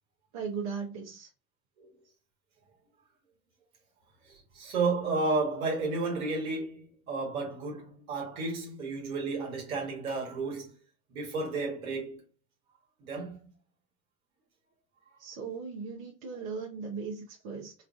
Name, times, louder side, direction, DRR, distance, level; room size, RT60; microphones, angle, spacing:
voice 1, 0.3-1.3 15.2-17.7, right 5 dB, 65° right, 1.1 m, -38 dB
voice 2, 4.5-10.7 11.1-12.2 13.0-13.4, right 3 dB, 80° right, 1.6 m, -32 dB
4.5 x 2.5 x 2.4 m
hypercardioid pair, 70°, 41 cm